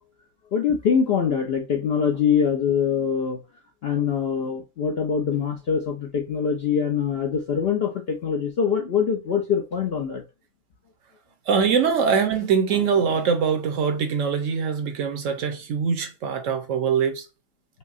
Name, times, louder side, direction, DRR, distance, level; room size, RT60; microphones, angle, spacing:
voice 1, 0.5-3.4 3.8-10.2, left 7 dB, 65° left, 0.6 m, -23 dB
voice 2, 11.5-17.2, right 6 dB, 65° right, 0.9 m, -23 dB
5.3 x 2.1 x 2.4 m
omnidirectional pair, 1.6 m